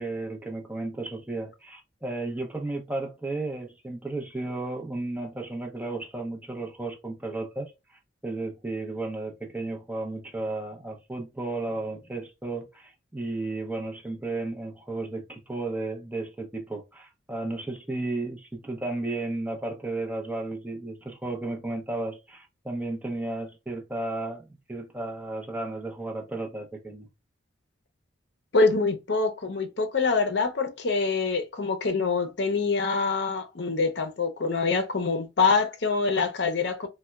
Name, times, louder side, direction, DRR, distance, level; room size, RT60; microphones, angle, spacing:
voice 1, 0.0-27.1, right 2 dB, 10° right, 0.5 m, -34 dB
voice 2, 28.5-36.9, left 4 dB, 65° left, 0.6 m, -25 dB
4.0 x 2.1 x 2.3 m
head